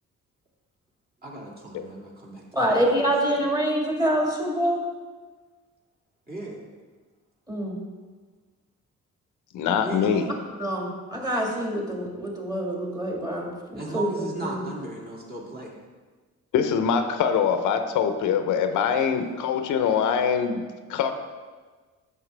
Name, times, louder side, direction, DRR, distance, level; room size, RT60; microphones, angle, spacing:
voice 1, 1.2-3.4 6.3-6.6 9.8-10.3 13.7-15.7, right 2 dB, 30° right, -3 dB, 2.3 m, -37 dB
voice 2, 2.5-4.8 7.5-7.8 10.6-14.6, right 1 dB, 10° right, -1 dB, 2.0 m, -26 dB
voice 3, 9.5-10.3 16.5-20.6 20.9-21.1, left 7 dB, 85° left, 8 dB, 0.8 m, -23 dB
9.9 x 6.9 x 3.3 m, 1.4 s
cardioid pair, 90°, 30 cm